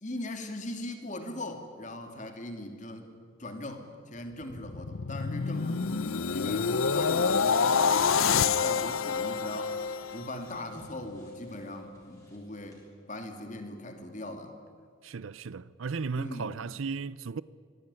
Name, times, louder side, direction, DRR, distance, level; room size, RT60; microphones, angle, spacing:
voice 1, 0.0-3.1 3.4-3.8 4.1-9.8 10.1-12.8 13.1-14.5 16.2-16.5, left 1 dB, 35° left, 2.8 m, -40 dB
sound 1, 4.4-10.7 11.1-11.4, left 5 dB, 85° left, 0.7 m, -27 dB
sound 2, 6.4-12.8, left 1 dB, 15° left, 6.6 m, -58 dB
voice 2, 15.0-17.4, right 5 dB, 80° right, 0.6 m, -35 dB
25.5 x 19.5 x 9.8 m
head